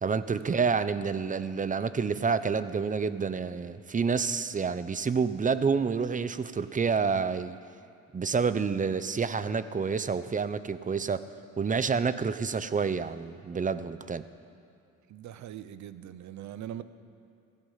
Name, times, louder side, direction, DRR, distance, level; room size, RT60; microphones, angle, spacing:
voice 1, 0.0-7.6 8.1-11.2 11.6-14.3, right 5 dB, 25° right, 14 dB, 0.7 m, -28 dB
voice 2, 15.1-16.8, right 11 dB, 70° right, 13 dB, 0.8 m, -41 dB
16.0 x 15.5 x 5.7 m, 2.6 s
cardioid pair, 90°, 30 cm